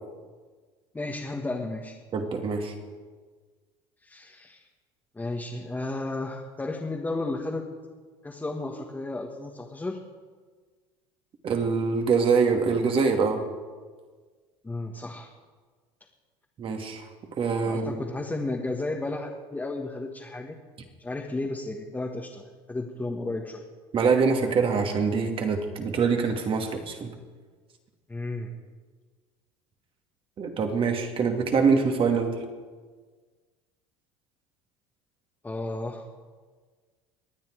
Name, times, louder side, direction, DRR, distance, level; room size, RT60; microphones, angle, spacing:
voice 1, 0.9-2.0 4.0-4.6 5.1-7.7 8.2-10.0 14.6-15.3 17.6-20.6 21.0-23.6 28.1-28.5 35.4-36.0, left 2 dB, 15° left, -1 dB, 1.7 m, -33 dB
voice 2, 2.1-2.7 11.4-13.4 16.6-17.1 17.3-18.0 23.9-27.1 30.4-32.4, right 5 dB, 40° right, 4 dB, 2.5 m, -24 dB
24.5 x 9.4 x 4.8 m, 1.5 s
supercardioid pair, 90°, 14 cm